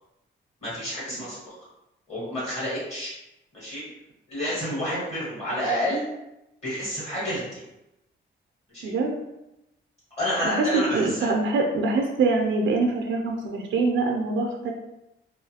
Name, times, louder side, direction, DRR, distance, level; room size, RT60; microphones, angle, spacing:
voice 1, 0.6-1.5 2.1-3.1 3.5-3.8 4.3-6.0 6.6-7.6 8.7-8.9 10.2-11.3, equal, 35° left, -9 dB, 1.3 m, -29 dB
voice 2, 8.8-9.1 10.4-10.7 10.9-14.7, right 3 dB, 80° right, 2 dB, 0.4 m, -24 dB
2.6 x 2.4 x 2.7 m, 0.92 s
wide cardioid pair, 175°, 20 cm